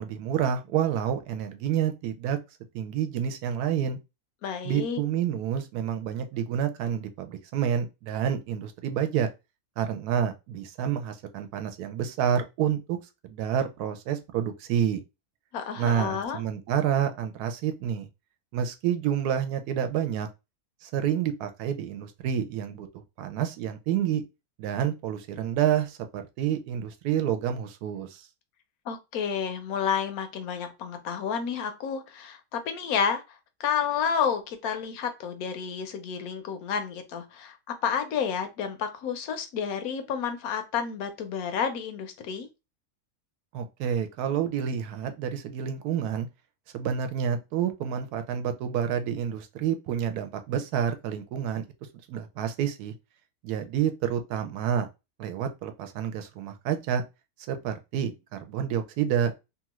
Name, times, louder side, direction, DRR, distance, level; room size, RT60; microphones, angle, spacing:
voice 1, 0.0-2.4 2.7-4.0 4.6-9.3 9.8-13.0 13.2-15.0 15.8-18.1 18.5-20.3 20.8-24.2 24.6-28.2 43.5-46.3 46.7-51.6 52.1-52.9 53.4-54.9 55.2-57.0 57.5-59.3, right 9 dB, 85° right, 1.1 m, -28 dB
voice 2, 4.4-5.0 15.5-16.4 28.9-33.2 33.6-42.5, left 7 dB, 75° left, 1.0 m, -30 dB
2.9 x 2.4 x 2.9 m
omnidirectional pair, 1.6 m